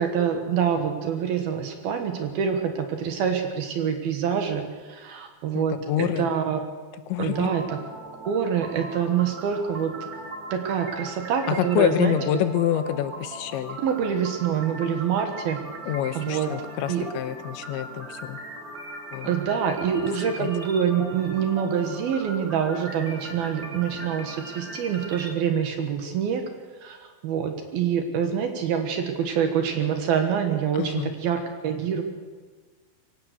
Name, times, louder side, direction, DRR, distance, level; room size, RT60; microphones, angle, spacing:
voice 1, 0.0-6.6 7.2-7.8 8.3-10.1 10.5-12.1 13.8-15.6 16.2-16.5 16.9-17.1 19.2-26.4 26.8-27.0 27.2-32.0, right 7 dB, 65° right, 5 dB, 2.8 m, -26 dB
voice 2, 5.5-6.3 7.1-7.5 11.6-13.8 15.9-18.4 19.1-19.4 20.4-20.5 30.7-31.1, left 11 dB, 80° left, 10 dB, 3.1 m, -27 dB
sound 1, 7.3-25.3, right 2 dB, 30° right, 1.6 m, -39 dB
23.5 x 16.5 x 6.7 m, 1.4 s
omnidirectional pair, 5.5 m